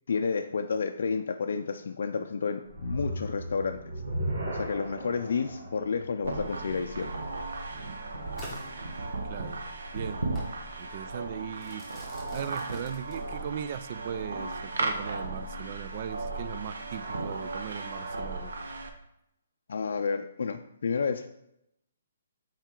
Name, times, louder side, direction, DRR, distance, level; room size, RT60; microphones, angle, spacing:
voice 1, 0.1-3.8 4.5-7.3 8.3-8.4 19.7-21.3, left 5 dB, 70° left, 0.4 m, -31 dB
sound 1, 2.6-7.9, right 1 dB, 55° right, 2.0 m, -37 dB
sound 2, 6.2-18.9, right 3 dB, 80° right, 0.9 m, -36 dB
Crackle / Fireworks, 8.4-9.5 10.4-10.6 11.6-13.6, left 1 dB, 5° right, 1.4 m, -47 dB
voice 2, 9.3-9.6 9.9-10.2 10.8-11.9 12.3-18.5, right 9 dB, 35° right, 0.3 m, -38 dB
7.3 x 4.4 x 3.8 m
hypercardioid pair, 170°, 0 cm